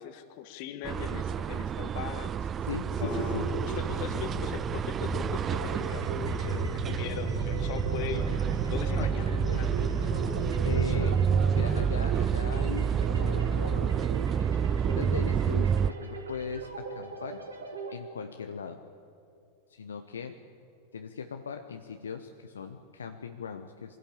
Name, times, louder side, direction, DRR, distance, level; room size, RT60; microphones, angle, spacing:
voice 1, 0.0-2.5 3.0-8.3 8.7-9.9 10.8-11.2, left 11 dB, 45° left, 9 dB, 1.8 m, -40 dB
sound 1, 0.8-15.9, right 7 dB, 25° right, 0.4 m, -29 dB
voice 2, 2.6-3.5 9.0-9.1 9.4-9.6 10.6-11.2 11.5-14.2 14.9-17.5 17.9-18.8 19.7-20.4 20.9-24.0, left 6 dB, 70° left, 6 dB, 1.0 m, -39 dB
sound 2, 2.9-10.9, right 2 dB, ahead, 4.0 m, -35 dB
sound 3, 5.4-17.9, right 5 dB, 75° right, 2.4 m, -42 dB
24.5 x 16.0 x 8.8 m, 2.6 s
figure-of-eight pair, 90°, 0 cm